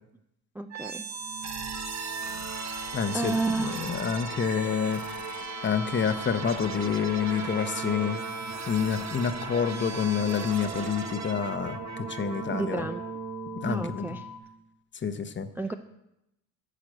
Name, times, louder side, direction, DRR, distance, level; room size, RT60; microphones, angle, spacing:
voice 1, 0.5-1.0 3.1-3.8 12.5-13.0 13.6-14.3 15.6-15.7, right 3 dB, 5° right, 6 dB, 0.4 m, -30 dB
sound 1, 0.7-14.6, right 6 dB, 40° right, 1.2 m, -37 dB
sound 2, 1.1-14.4, left 8 dB, 85° left, 1.7 m, -44 dB
voice 2, 2.9-5.0 5.6-8.2 8.7-12.8 13.5-14.1 15.0-15.5, left 7 dB, 25° left, 11 dB, 0.9 m, -28 dB
10.0 x 5.8 x 7.7 m, 0.86 s
supercardioid pair, 85°, 42 cm